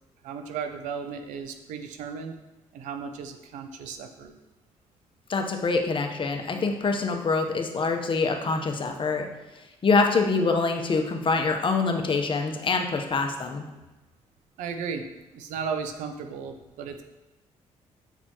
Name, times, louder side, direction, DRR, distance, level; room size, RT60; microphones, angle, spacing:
voice 1, 0.2-2.4 2.7-4.3 14.6-15.1 15.3-17.0, right 6 dB, 90° right, 7 dB, 0.6 m, -35 dB
voice 2, 5.3-9.3 9.6-13.6, left 4 dB, 45° left, 4 dB, 0.9 m, -25 dB
8.0 x 4.2 x 3.0 m, 1.1 s
cardioid pair, 70°, 12 cm